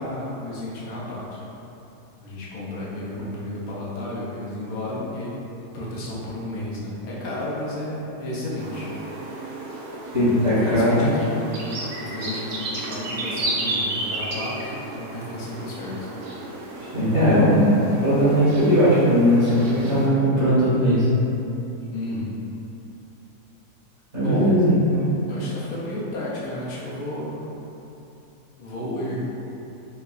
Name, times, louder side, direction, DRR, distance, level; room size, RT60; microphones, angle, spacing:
voice 1, 0.0-1.4 2.2-5.4 5.7-8.9 10.4-11.4 12.0-16.1 21.9-22.3 24.2-24.6 25.3-27.5 28.6-29.3, left 1 dB, 75° left, -7 dB, 1.0 m, -32 dB
sound 1, 8.6-20.1, right 2 dB, 80° right, 0.6 m, -33 dB
voice 2, 10.1-11.2 16.8-21.0 24.1-25.0, equal, 45° right, -12 dB, 1.5 m, -19 dB
4.4 x 2.0 x 2.3 m, 2.9 s
omnidirectional pair, 1.7 m